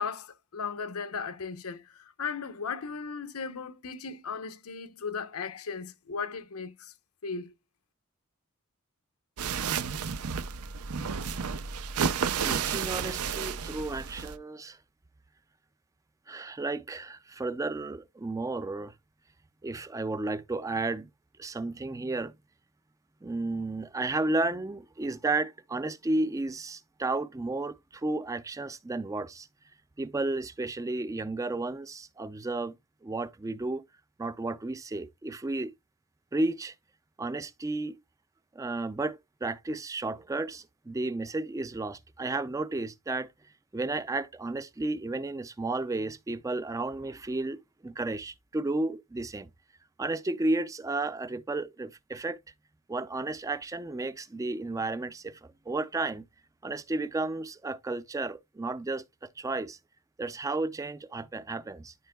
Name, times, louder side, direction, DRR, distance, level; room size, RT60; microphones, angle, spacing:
voice 1, 0.0-6.9 7.2-7.5, left 5 dB, 85° left, 0.8 m, -36 dB
sound 1, 9.4-14.4, right 6 dB, 90° right, 0.6 m, -31 dB
voice 2, 12.4-14.8 16.3-18.9 19.6-21.1 21.4-22.3 23.2-29.5 30.0-32.8 33.0-33.8 34.2-35.7 36.3-36.7 37.2-38.0 38.6-43.3 43.7-49.5 50.0-52.4 52.9-55.4 55.7-56.3 56.6-59.8 60.2-61.9, right 2 dB, 15° right, 0.4 m, -33 dB
12.5 x 4.5 x 2.2 m
head